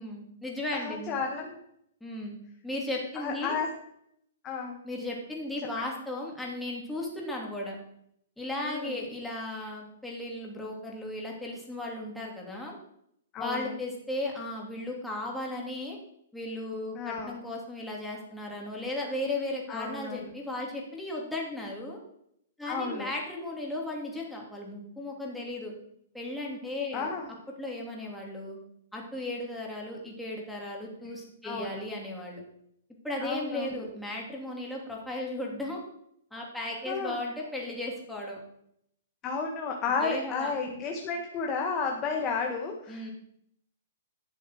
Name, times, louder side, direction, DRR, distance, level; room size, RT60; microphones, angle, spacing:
voice 1, 0.0-1.2 2.0-2.4 2.6-3.6 4.8-7.8 8.4-12.8 13.4-16.0 16.3-22.0 22.6-25.7 26.1-27.1 27.6-28.6 28.9-32.4 33.0-35.8 36.3-38.4 40.0-40.5 42.9-43.1, left 1 dB, 5° left, -2 dB, 3.3 m, -36 dB
voice 2, 0.7-1.6 3.2-3.7 4.4-4.8 8.6-9.0 13.3-13.7 16.9-17.4 19.7-20.3 22.7-23.1 26.9-27.3 31.0-31.1 31.4-31.8 33.2-33.9 36.9-37.2 39.2-43.1, left 5 dB, 25° left, 1 dB, 1.8 m, -32 dB
11.5 x 7.1 x 6.2 m, 0.73 s
hypercardioid pair, 130°, 0 cm